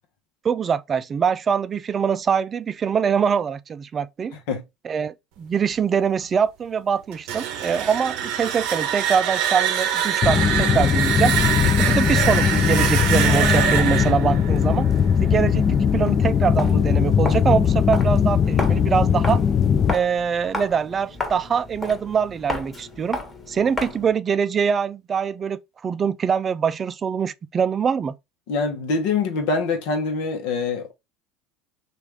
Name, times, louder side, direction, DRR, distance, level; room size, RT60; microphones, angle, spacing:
voice 1, 0.4-4.3 4.8-11.3 11.6-14.9 15.2-19.4 19.9-23.2 23.5-28.1, right 7 dB, 35° right, 0.3 m, -23 dB
sound 1, 7.1-15.9, right 9 dB, 70° right, 0.6 m, -24 dB
sound 2, 10.2-19.9, left 7 dB, 40° left, 0.4 m, -20 dB
Walk footsteps, 16.5-24.2, left 2 dB, 20° left, 1.2 m, -33 dB
voice 2, 28.5-30.9, left 4 dB, 70° left, 0.9 m, -24 dB
3.1 x 2.5 x 3.4 m
hypercardioid pair, 85°, 0 cm